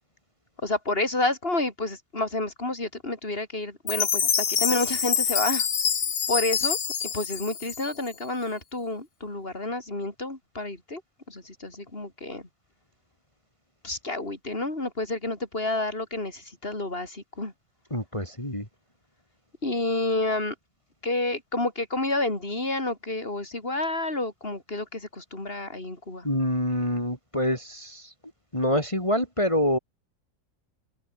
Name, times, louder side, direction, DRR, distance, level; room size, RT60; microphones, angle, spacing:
voice 1, 0.6-5.7 6.3-6.8 7.0-11.0 11.3-12.5 13.8-17.5 19.6-20.5 21.0-26.3, left 2 dB, 35° left, 5.0 m, -29 dB
Chime, 3.9-8.2, left 7 dB, 75° left, 2.3 m, -26 dB
voice 2, 17.9-18.7 26.2-28.1 28.5-29.8, left 1 dB, 15° left, 6.5 m, -26 dB
omnidirectional pair, 1.8 m